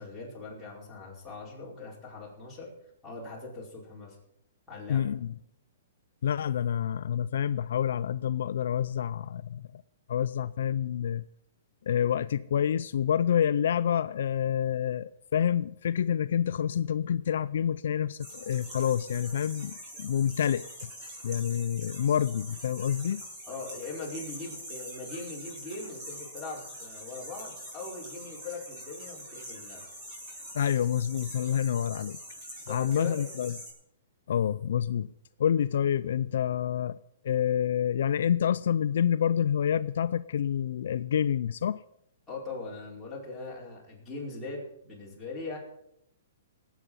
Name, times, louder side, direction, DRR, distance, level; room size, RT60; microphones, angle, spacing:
voice 1, 0.0-2.7 3.0-4.2 4.7-5.0 23.5-29.8 32.6-33.2 42.3-45.6, left 3 dB, 5° left, -7 dB, 4.7 m, -40 dB
voice 2, 4.9-5.3 6.2-9.8 10.1-11.2 11.9-20.9 21.2-23.2 30.5-32.2 32.7-33.5 34.3-35.1 35.4-37.0 37.2-41.8, left 9 dB, 70° left, 14 dB, 0.4 m, -28 dB
sound 1, 18.2-33.7, equal, 25° right, 5.8 m, -44 dB
20.0 x 8.3 x 5.5 m, 0.76 s
hypercardioid pair, 165°, 0 cm